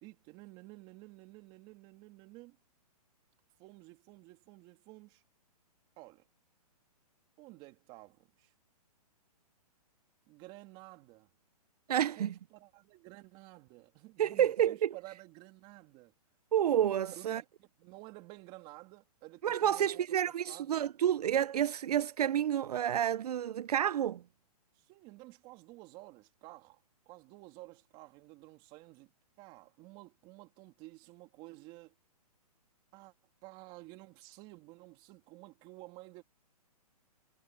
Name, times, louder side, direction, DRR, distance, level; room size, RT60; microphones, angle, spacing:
voice 1, 0.0-2.6 3.6-5.2 6.0-6.2 7.4-8.5 10.3-11.3 12.1-16.1 17.1-20.7 24.7-29.1 29.4-31.9 32.9-33.1 33.4-36.2, right 21 dB, 25° right, 3.1 m, -52 dB
voice 2, 11.9-12.3 14.2-14.9 16.5-17.4 19.4-24.2, right 10 dB, 80° right, 0.5 m, -29 dB
hypercardioid pair, 160°, 20 cm